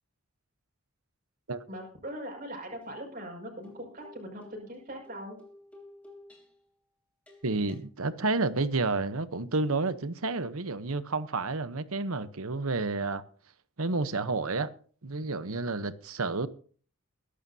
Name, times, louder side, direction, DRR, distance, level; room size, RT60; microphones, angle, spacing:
voice 1, 1.7-5.4, equal, 40° right, 5.9 m, -41 dB
sound 1, 2.8-2.9 3.6-6.7 7.3-7.8, left 2 dB, 5° left, 3.6 m, -54 dB
voice 2, 7.4-13.2 13.8-14.7 15.0-16.5, right 3 dB, 75° right, 1.0 m, -30 dB
22.0 x 11.5 x 2.8 m
head